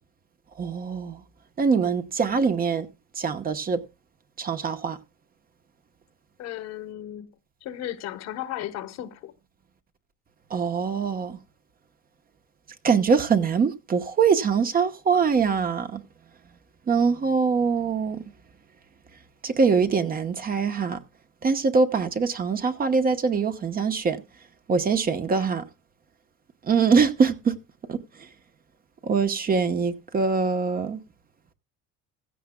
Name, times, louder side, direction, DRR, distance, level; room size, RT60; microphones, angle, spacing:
voice 1, 0.6-1.2 1.6-2.9 3.2-3.8 4.4-5.0 10.5-11.4 12.8-16.0 16.9-18.2 19.4-21.0 21.4-24.2 24.7-25.6 26.7-27.6 27.9-28.0 29.0-31.0, right 5 dB, 30° right, 1.0 m, -23 dB
voice 2, 6.4-7.3 7.6-9.3, left 12 dB, 60° left, 1.2 m, -35 dB
16.0 x 14.5 x 2.2 m
cardioid pair, 115°, 29 cm